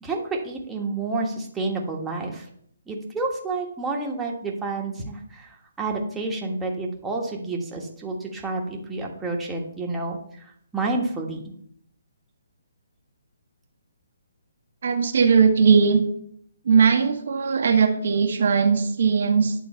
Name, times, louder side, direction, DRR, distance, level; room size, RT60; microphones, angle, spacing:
voice 1, 0.0-2.5 2.9-11.5, right 3 dB, 10° right, -1 dB, 1.3 m, -29 dB
voice 2, 14.8-16.0 16.6-19.5, right 6 dB, 60° right, 5 dB, 1.1 m, -19 dB
9.4 x 3.8 x 5.6 m, 0.67 s
figure-of-eight pair, 145°, 0 cm